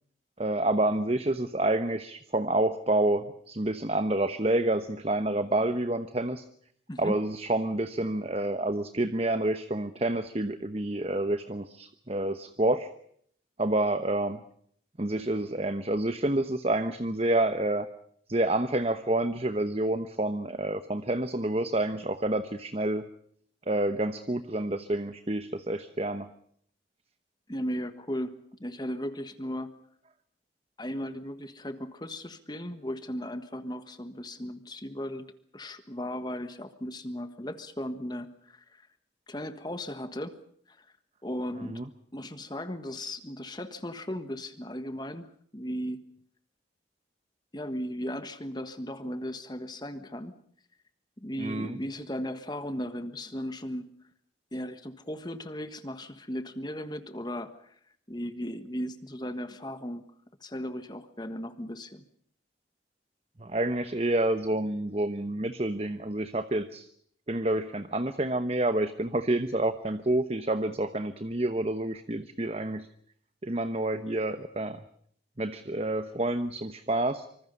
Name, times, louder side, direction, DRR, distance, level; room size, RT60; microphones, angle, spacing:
voice 1, 0.4-6.5 7.0-12.9 13.6-14.4 15.0-17.9 18.3-23.1 23.7-26.3 41.7-41.8 51.4-51.8 63.4-66.9 67.3-72.9 73.4-74.8 75.4-77.2, right 1 dB, 35° right, 10 dB, 1.0 m, -28 dB
voice 2, 27.5-29.7 30.8-35.2 35.5-38.9 39.3-40.4 40.7-40.8 41.2-41.8 42.1-46.0 47.5-50.4 51.2-53.9 54.5-57.8 58.1-60.0 60.4-62.0, equal, 20° left, 10 dB, 1.5 m, -36 dB
25.5 x 25.5 x 5.4 m, 0.63 s
head